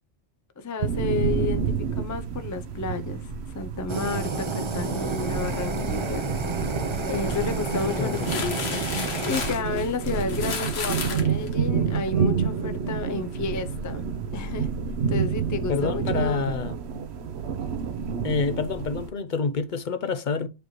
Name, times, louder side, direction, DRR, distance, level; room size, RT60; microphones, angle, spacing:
voice 1, 0.6-3.3 3.5-6.6 7.0-14.0 14.3-14.7 15.1-16.6, left 4 dB, 30° left, 0.3 m, -32 dB
sound 1, 0.8-19.1, right 6 dB, 80° right, 1.0 m, -29 dB
Fire, 3.9-9.5, right 3 dB, 35° right, 0.6 m, -30 dB
sound 2, 7.1-12.2, left 5 dB, 75° left, 1.3 m, -34 dB
voice 2, 15.7-16.8 18.2-20.5, left 5 dB, 55° left, 0.7 m, -27 dB
7.9 x 5.0 x 3.0 m
omnidirectional pair, 1.1 m